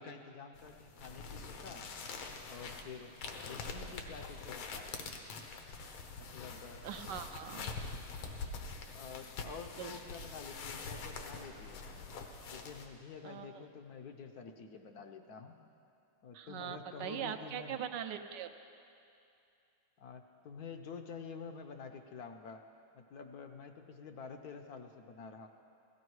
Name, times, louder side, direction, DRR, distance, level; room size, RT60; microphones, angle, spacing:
voice 1, 0.0-1.9 2.5-3.1 3.5-5.0 6.2-6.8 7.9-8.5 8.9-12.1 12.5-15.6 16.2-17.9 20.0-22.6 22.9-25.5, left 5 dB, 65° left, 6 dB, 1.0 m, -49 dB
sound 1, 0.6-12.9, left 4 dB, 80° left, 1.9 m, -45 dB
voice 2, 6.8-7.7 9.8-10.0 13.2-13.6 16.3-18.5, right 9 dB, 75° right, 7 dB, 1.1 m, -41 dB
17.0 x 15.0 x 4.7 m, 2.6 s
omnidirectional pair, 2.3 m